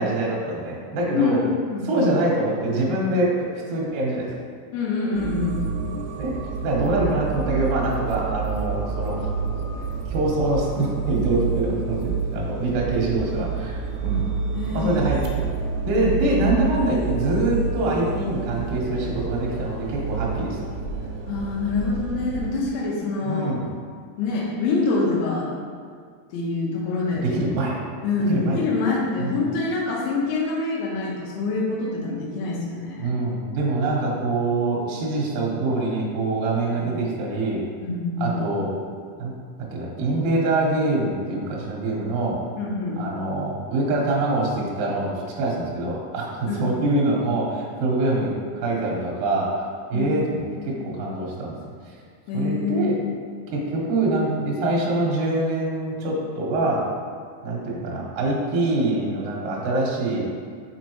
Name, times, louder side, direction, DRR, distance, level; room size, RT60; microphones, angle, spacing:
voice 1, 0.0-1.4 1.9-4.3 6.2-6.4 6.6-9.3 10.1-14.3 14.7-15.5 15.8-20.7 23.2-23.7 27.1-27.8 28.3-28.6 29.2-29.4 33.0-37.6 38.2-38.7 39.2-39.3 39.7-42.4 43.0-48.3 48.6-51.5 51.8-51.9 52.3-53.0 53.5-56.9 57.4-60.3, right 2 dB, 65° right, -3 dB, 2.5 m, -24 dB
voice 2, 1.1-1.4 1.7-2.1 4.7-5.6 14.5-15.0 15.9-16.4 21.3-23.5 24.2-25.5 26.3-27.2 28.0-33.1 36.7-36.9 37.8-38.4 42.6-43.0 46.5-46.6 49.9-50.1 52.3-52.9, left 3 dB, 80° left, -3 dB, 3.3 m, -25 dB
sound 1, 5.1-22.5, right 5 dB, 85° right, 2.9 m, -29 dB
6.3 x 5.9 x 3.0 m, 2.1 s
omnidirectional pair, 5.3 m